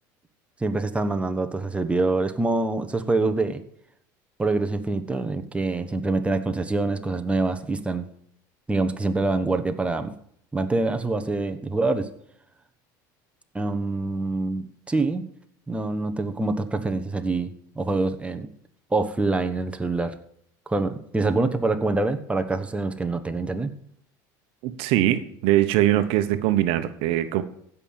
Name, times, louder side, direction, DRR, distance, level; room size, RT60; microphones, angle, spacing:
voice 1, 0.6-3.6 4.4-8.0 8.7-10.1 10.5-12.1 13.5-15.2 15.7-17.5 17.7-18.5 18.9-20.2 20.7-23.7, right 3 dB, 10° right, 8 dB, 1.3 m, -25 dB
voice 2, 24.6-27.4, right 13 dB, 65° right, 10 dB, 1.1 m, -22 dB
15.5 x 5.8 x 7.5 m, 0.68 s
supercardioid pair, 95°, 10 cm